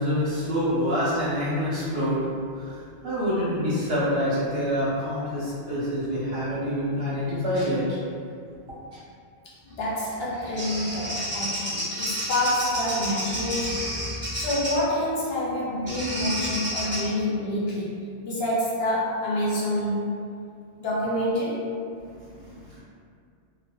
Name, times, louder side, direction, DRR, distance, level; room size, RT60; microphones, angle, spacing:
voice 1, 0.0-2.3 2.5-8.0 22.2-22.8, equal, 65° right, -10 dB, 1.1 m, -26 dB
voice 2, 9.8-13.9 14.3-20.0 20.8-21.7, left 1 dB, 65° left, -6 dB, 0.8 m, -27 dB
Bird vocalization bird call bird song, 10.1-14.8 15.9-17.0, equal, 10° left, 0.8 m, -30 dB
2.5 x 2.3 x 2.2 m, 2.3 s
omnidirectional pair, 1.2 m